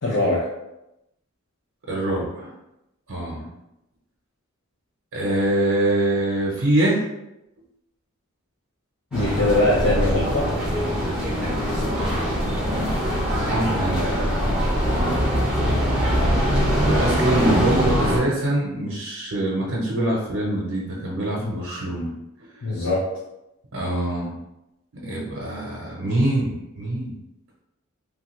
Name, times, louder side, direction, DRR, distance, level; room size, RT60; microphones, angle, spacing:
voice 1, 0.0-0.5 9.1-10.5 21.4-21.6 22.6-23.1, left 2 dB, 70° left, -5 dB, 0.6 m, -22 dB
voice 2, 1.9-2.5 3.1-3.5 5.1-7.0 11.9-12.3 13.4-14.3 14.9-15.2 16.9-22.1 22.4-22.6 23.7-24.3 25.0-27.1, right 1 dB, 85° right, -3 dB, 0.7 m, -24 dB
sound 1, 9.1-18.2, equal, 5° right, 0.7 m, -22 dB
3.1 x 2.3 x 3.0 m, 0.89 s
head